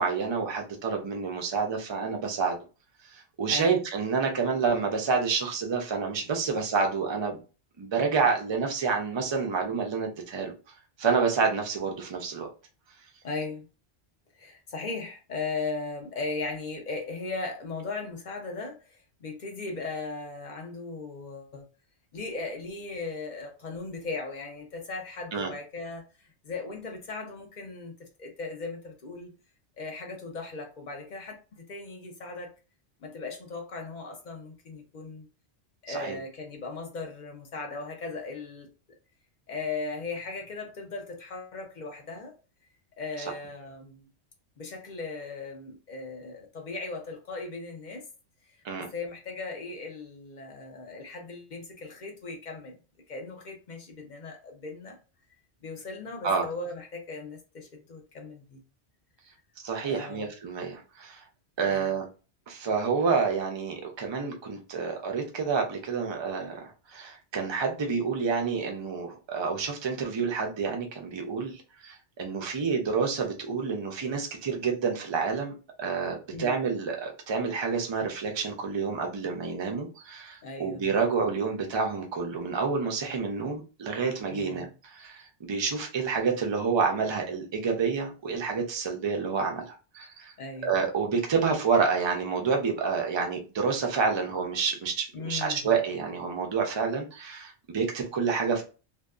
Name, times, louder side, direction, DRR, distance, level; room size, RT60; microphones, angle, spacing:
voice 1, 0.0-2.6 3.1-7.4 7.8-10.5 11.0-12.5 25.3-25.5 35.9-36.2 48.6-48.9 56.2-56.4 59.6-61.2 61.6-62.0 62.5-75.5 75.8-90.3 90.6-98.6, right 5 dB, 40° right, 0.4 m, -28 dB
voice 2, 3.5-3.8 13.2-13.7 14.3-21.6 22.1-29.3 29.8-32.5 33.0-35.3 35.8-38.7 39.5-42.3 43.0-44.1 44.6-48.0 48.5-52.8 53.1-55.0 55.6-58.6 59.8-60.3 61.6-61.9 76.3-76.6 80.4-80.9 84.3-84.7 90.4-90.7 95.1-95.7, left 3 dB, 55° left, 0.6 m, -38 dB
2.7 x 2.2 x 2.3 m
omnidirectional pair, 1.1 m